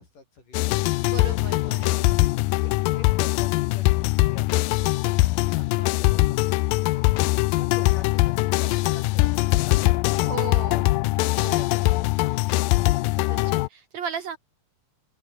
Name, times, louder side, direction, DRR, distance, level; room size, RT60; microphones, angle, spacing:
voice 1, 0.0-0.9 1.3-7.1 7.6-9.9 10.4-10.9, left 3 dB, 65° left, 9.3 m, -47 dB
sound 1, 0.5-13.7, left 20 dB, 80° left, 2.2 m, -22 dB
voice 2, 1.1-2.1 10.3-10.9 11.4-11.9 13.2-14.4, right 7 dB, 60° right, 2.2 m, -36 dB
open air
omnidirectional pair, 4.1 m